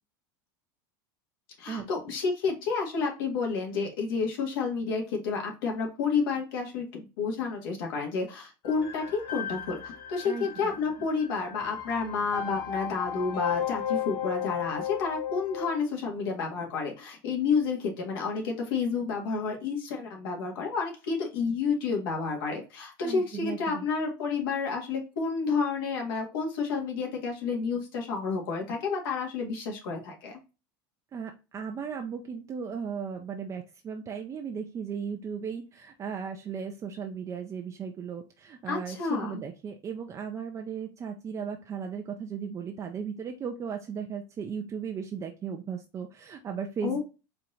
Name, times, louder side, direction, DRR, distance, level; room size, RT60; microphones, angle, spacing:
voice 1, 1.6-30.4 38.7-39.4 46.8-47.0, left 5 dB, 75° left, 1 dB, 1.8 m, -30 dB
sound 1, 8.7-15.8, left 10 dB, 45° left, 2.2 m, -35 dB
voice 2, 10.2-10.8 23.0-23.9 31.1-47.0, right 6 dB, 25° right, 4 dB, 0.5 m, -36 dB
4.4 x 2.9 x 3.8 m, 0.30 s
supercardioid pair, 130°, 12 cm